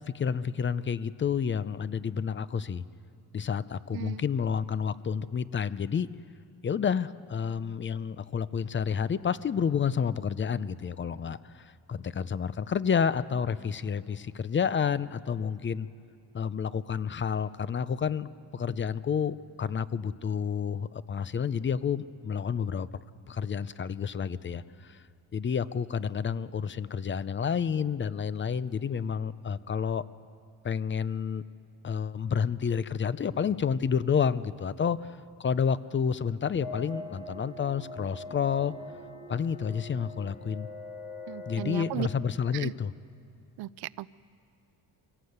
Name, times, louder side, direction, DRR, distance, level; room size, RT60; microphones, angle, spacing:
voice 1, 0.1-2.8 3.3-6.1 6.6-15.9 16.3-22.9 23.3-25.0 25.3-30.0 30.6-31.4 31.8-38.7 39.3-40.7 41.5-42.9, left 7 dB, 30° left, 16 dB, 0.6 m, -30 dB
voice 2, 3.9-4.2 41.3-42.1 42.5-42.7 43.6-44.1, right 17 dB, 70° right, 19 dB, 0.6 m, -36 dB
sound 1, 36.6-41.9, left 1 dB, 80° left, 7.8 m, -43 dB
25.0 x 17.0 x 8.0 m, 2.5 s
cardioid pair, 110°, 40 cm